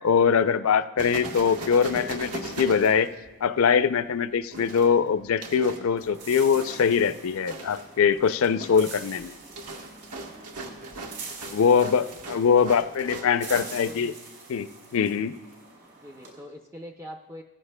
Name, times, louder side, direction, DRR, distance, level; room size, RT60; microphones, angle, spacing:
voice 1, 0.0-3.1 3.4-9.3 11.5-14.1 14.5-15.3, left 6 dB, 65° left, 13 dB, 0.4 m, -22 dB
sound 1, 1.0-3.6 4.5-5.9 6.6-7.1 7.5-7.9 8.3-13.9, right 2 dB, 85° right, 1.2 m, -38 dB
sound 2, 6.0-16.3, right 4 dB, 50° right, 3.7 m, -45 dB
voice 2, 12.8-14.2 16.0-17.4, equal, 10° right, 2 dB, 0.5 m, -44 dB
17.5 x 14.5 x 2.2 m, 1.2 s
head